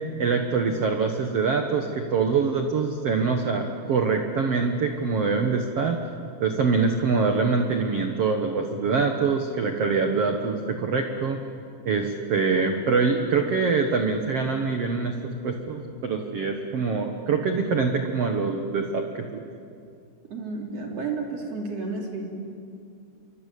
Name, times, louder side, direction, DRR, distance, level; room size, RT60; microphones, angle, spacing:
voice 1, 0.2-6.0 6.4-11.4 11.8-19.0 19.3-19.5, right 4 dB, 85° right, 4 dB, 1.3 m, -24 dB
voice 2, 20.3-22.2, right 4 dB, 40° right, 1 dB, 3.6 m, -31 dB
28.0 x 24.5 x 8.5 m, 2.4 s
omnidirectional pair, 5.1 m